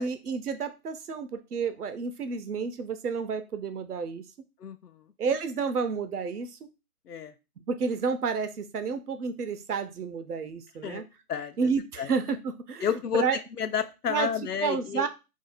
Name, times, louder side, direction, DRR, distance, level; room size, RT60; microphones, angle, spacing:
voice 1, 0.0-4.2 5.2-6.6 7.7-11.0 11.6-12.9 13.1-13.4 14.1-14.3 14.6-15.1, right 5 dB, 75° right, 9 dB, 0.7 m, -30 dB
voice 2, 4.6-5.0 7.1-7.3 10.8-11.0 11.3-11.7 12.0-12.1 12.8-13.2 13.6-15.1, left 8 dB, 85° left, 10 dB, 0.6 m, -30 dB
2.7 x 2.1 x 3.9 m, 0.28 s
figure-of-eight pair, 155°, 46 cm